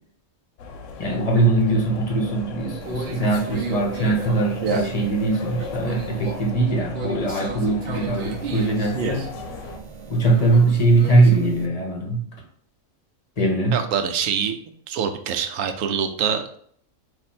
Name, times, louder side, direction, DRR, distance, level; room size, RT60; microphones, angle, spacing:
sound 1, 0.6-9.8, left 5 dB, 70° left, 0.9 m, -37 dB
voice 1, 1.0-9.3 10.1-12.2 13.4-13.8, right 2 dB, 35° left, 1 dB, 0.8 m, -21 dB
Conversation, 2.8-11.7, right 4 dB, 55° right, 0.8 m, -33 dB
voice 2, 13.7-14.6 14.9-16.6, right 7 dB, 75° right, 7 dB, 1.0 m, -25 dB
4.3 x 2.6 x 4.2 m, 0.62 s
omnidirectional pair, 1.4 m